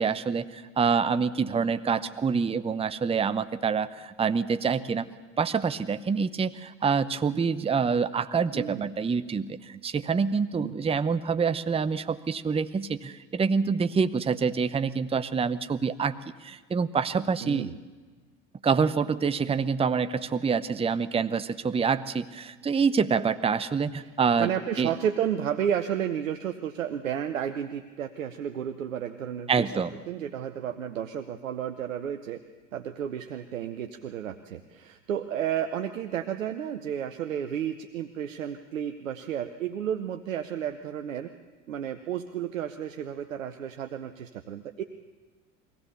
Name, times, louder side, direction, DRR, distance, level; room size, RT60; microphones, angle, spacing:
voice 1, 0.0-5.1 5.4-17.7 18.6-24.5 24.8-24.9 29.5-29.9, right 5 dB, 15° right, 12 dB, 0.8 m, -26 dB
voice 2, 8.5-8.9 10.6-10.8 17.4-17.7 24.4-29.7 30.1-32.4 32.7-41.3 41.7-44.8, right 9 dB, 85° right, 8 dB, 0.9 m, -32 dB
23.5 x 16.5 x 6.9 m, 1.4 s
hypercardioid pair, 75°, 38 cm